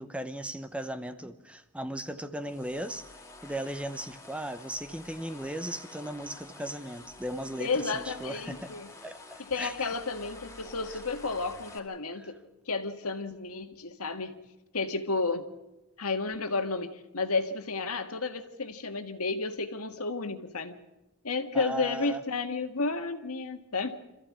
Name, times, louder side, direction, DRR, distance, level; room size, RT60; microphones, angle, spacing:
voice 1, 0.0-3.1 3.4-8.7 9.0-9.9 12.2-12.3 21.5-22.2, right 1 dB, 5° right, 0.8 m, -37 dB
sound 1, 2.4-11.8, left 2 dB, 15° left, 2.3 m, -49 dB
voice 2, 7.6-8.9 9.4-12.4 12.7-14.4 14.7-15.5 16.0-20.8 21.2-24.0, left 3 dB, 80° left, 1.8 m, -32 dB
26.0 x 14.5 x 8.6 m
head